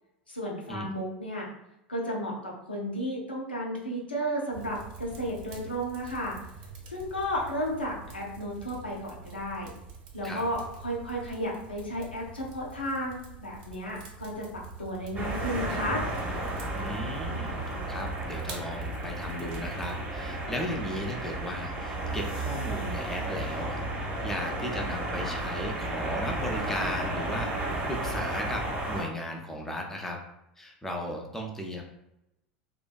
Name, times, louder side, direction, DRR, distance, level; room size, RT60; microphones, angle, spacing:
voice 1, 0.3-1.5 1.9-6.4 6.9-9.7 10.1-16.0, equal, 90° left, -3 dB, 0.6 m, -33 dB
sound 1, 4.5-20.0, right 4 dB, 60° right, 0.6 m, -46 dB
sound 2, 15.1-29.0, right 2 dB, 25° right, 0.7 m, -33 dB
voice 2, 16.7-17.6 17.9-23.8 24.2-27.5 27.9-30.2 30.6-31.8, left 1 dB, 5° left, 0 dB, 0.4 m, -36 dB
2.5 x 2.2 x 2.3 m, 0.87 s
figure-of-eight pair, 80°, 5 cm